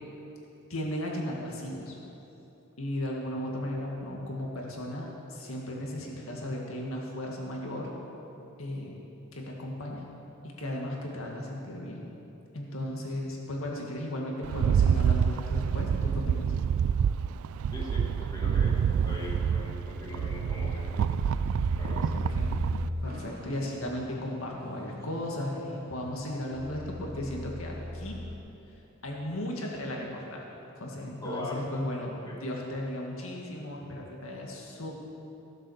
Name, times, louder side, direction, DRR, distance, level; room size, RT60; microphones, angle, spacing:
voice 1, 0.7-2.0 2.8-7.9 8.6-8.9 9.3-10.0 10.4-12.0 12.5-16.5 22.1-22.5 23.0-28.2 29.0-30.4 30.8-35.0, left 1 dB, 75° left, -1 dB, 1.9 m, -35 dB
Rattle, 14.4-22.9, right 7 dB, 80° right, 0.3 m, -27 dB
voice 2, 17.7-18.8 19.0-21.1 21.8-22.2 31.2-31.7 32.3-32.4, left 2 dB, 20° left, -5 dB, 2.1 m, -40 dB
sound 1, 18.9-28.4, left 1 dB, 50° right, 1.0 m, -39 dB
16.0 x 7.5 x 6.5 m, 2.9 s
head